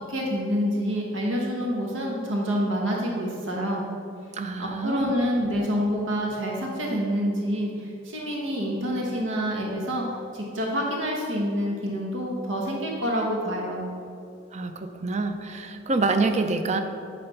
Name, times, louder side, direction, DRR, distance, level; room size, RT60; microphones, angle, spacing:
voice 1, 0.1-3.8 4.6-13.8, equal, 85° right, -1 dB, 1.1 m, -27 dB
voice 2, 4.3-5.1 14.5-16.8, right 3 dB, 35° right, 7 dB, 0.5 m, -26 dB
9.4 x 3.4 x 5.6 m, 2.5 s
head